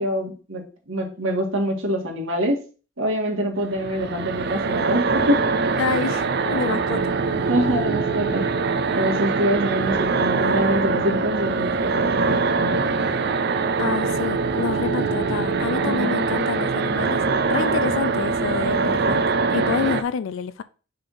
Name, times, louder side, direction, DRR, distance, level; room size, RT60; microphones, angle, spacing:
voice 1, 0.0-2.6 3.0-5.4 7.5-8.5 9.0-13.0 15.8-16.2, equal, 80° right, 1.9 m, -25 dB
sound 1, 3.7-20.0, right 4 dB, 55° right, 0.5 m, -23 dB
voice 2, 5.8-7.1 13.8-17.2 17.5-20.6, left 6 dB, 75° left, 0.4 m, -28 dB
5.6 x 3.6 x 5.4 m
head